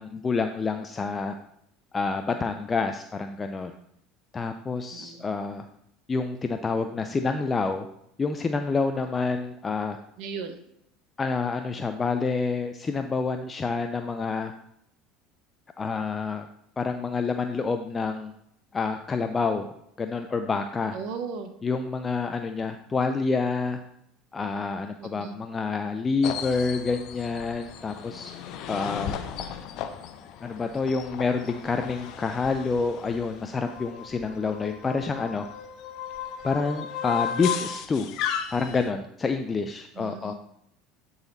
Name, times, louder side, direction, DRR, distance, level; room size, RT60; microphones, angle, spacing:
voice 1, 0.0-1.3 1.9-3.7 4.3-5.7 6.1-7.9 8.2-10.0 11.2-14.5 15.8-16.5 16.8-18.3 18.7-21.0 21.6-23.8 24.3-28.3 28.7-29.2 30.4-35.5 36.4-38.1 38.5-40.3, left 4 dB, 25° left, 7 dB, 0.5 m, -28 dB
voice 2, 4.9-5.2 10.2-10.6 20.9-21.5 25.0-25.3 40.0-40.3, right 5 dB, 65° right, 7 dB, 1.0 m, -36 dB
sound 1, 26.2-38.9, left 9 dB, 60° left, 0.6 m, -35 dB
9.6 x 4.1 x 4.0 m, 0.75 s
supercardioid pair, 95°, 0 cm